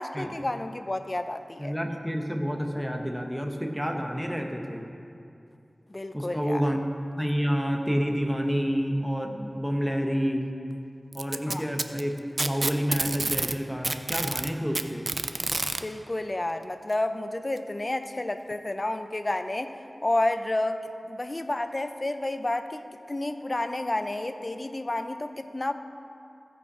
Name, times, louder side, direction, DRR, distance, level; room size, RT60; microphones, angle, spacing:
voice 1, 0.0-1.7 5.9-6.7 11.5-11.6 15.8-19.7 20.0-25.7, left 1 dB, 35° left, 9 dB, 0.5 m, -30 dB
voice 2, 1.6-4.9 6.1-6.9 7.2-10.5 11.1-15.0, equal, ahead, 2 dB, 1.0 m, -29 dB
Packing tape duct tape, 11.1-13.6 13.8-15.8 16.9-17.0 17.6-17.7 18.5-18.6, right 2 dB, 45° right, 0.4 m, -28 dB
15.5 x 5.4 x 4.9 m, 2.6 s
wide cardioid pair, 75°, 0 cm